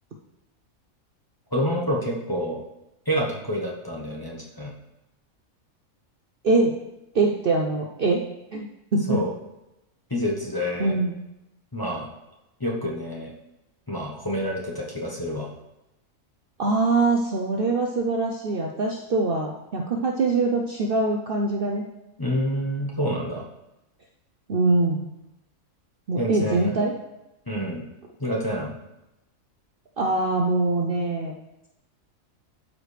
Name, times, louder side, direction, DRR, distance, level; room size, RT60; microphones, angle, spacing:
voice 1, 1.5-2.6 3.1-4.7 9.1-9.3 10.1-10.9 11.7-12.1 12.6-13.3 13.9-15.5 22.2-23.4 26.2-26.7 27.5-27.8 28.2-28.7, equal, 20° left, -4 dB, 1.0 m, -28 dB
voice 2, 6.4-6.7 7.1-8.2 8.5-8.7 8.9-9.2 10.8-11.1 16.6-21.8 24.5-25.1 26.1-26.9 30.0-31.3, right 3 dB, 50° right, 0 dB, 0.7 m, -23 dB
12.5 x 4.7 x 3.3 m, 0.92 s
omnidirectional pair, 1.4 m